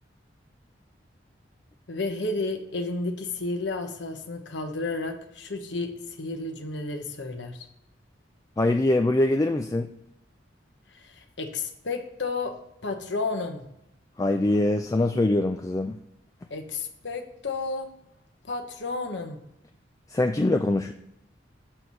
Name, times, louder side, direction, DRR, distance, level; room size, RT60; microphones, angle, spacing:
voice 1, 1.9-7.7 10.9-12.6 12.8-13.6 16.5-17.9 18.4-19.4, left 3 dB, 70° left, 5 dB, 1.0 m, -32 dB
voice 2, 8.6-9.9 14.2-16.0 20.1-20.9, left 2 dB, 20° left, 6 dB, 0.3 m, -23 dB
6.3 x 4.4 x 5.5 m, 0.83 s
head